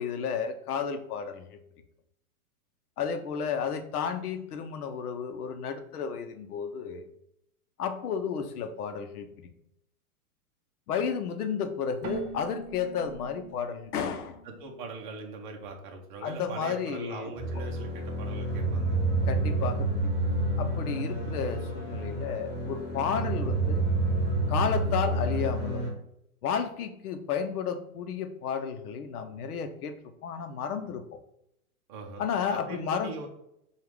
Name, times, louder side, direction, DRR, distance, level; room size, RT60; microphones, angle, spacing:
voice 1, 0.0-1.6 3.0-7.1 7.8-9.5 10.9-14.4 16.2-17.3 19.3-20.1 20.6-23.8 24.5-25.9 26.4-29.9 30.2-31.2 32.2-33.1, left 7 dB, 80° left, 8 dB, 0.8 m, -32 dB
Keyboard (musical), 12.0-15.7, right 5 dB, 75° right, 0.8 m, -44 dB
voice 2, 14.4-19.0 31.9-33.3, right 4 dB, 35° right, 1 dB, 0.6 m, -41 dB
sound 1, 17.4-25.9, right 2 dB, 15° right, 1.1 m, -29 dB
4.7 x 2.4 x 3.4 m, 0.76 s
hypercardioid pair, 155°, 45 cm